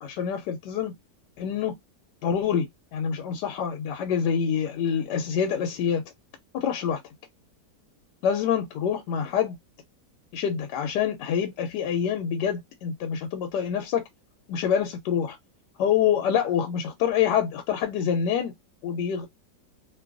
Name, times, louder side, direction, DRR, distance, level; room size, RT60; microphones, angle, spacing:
voice 1, 0.0-0.9 1.4-1.7 2.2-6.0 6.5-7.0 8.2-9.6 10.3-14.0 14.5-15.4 15.8-18.5 18.8-19.3, left 8 dB, 85° left, 1.2 m, -26 dB
2.8 x 2.2 x 2.4 m
omnidirectional pair, 1.8 m